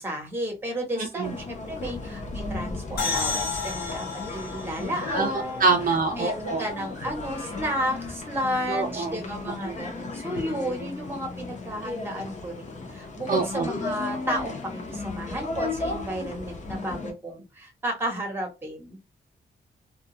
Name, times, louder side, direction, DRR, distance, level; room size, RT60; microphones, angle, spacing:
voice 1, 0.0-19.0, equal, 15° right, 0.8 m, -32 dB
voice 2, 1.0-1.3 5.1-6.6 8.7-9.2 9.6-9.7 13.3-13.7, right 4 dB, 55° right, 0.5 m, -25 dB
sound 1, 1.2-17.1, left 3 dB, 45° left, 0.6 m, -35 dB
sound 2, 3.0-6.5, left 4 dB, 65° left, 0.9 m, -32 dB
2.2 x 2.2 x 2.7 m
wide cardioid pair, 165°, 17 cm